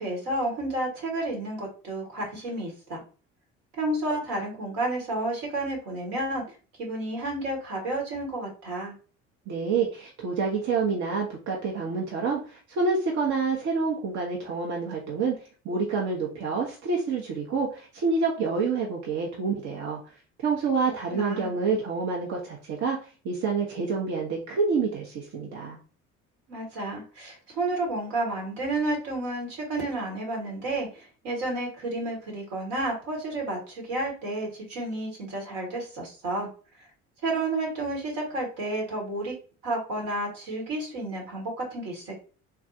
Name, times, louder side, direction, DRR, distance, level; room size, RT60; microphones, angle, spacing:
voice 1, 0.0-3.0 3.8-6.4 6.8-8.9 20.8-21.5 26.5-36.5 37.2-39.3 39.6-42.2, right 2 dB, 70° right, 0 dB, 1.5 m, -31 dB
voice 2, 9.5-15.3 15.6-20.0 20.4-23.0 23.2-25.8, right 4 dB, 50° right, -1 dB, 0.8 m, -27 dB
3.4 x 2.3 x 2.7 m, 0.37 s
hypercardioid pair, 55°, 37 cm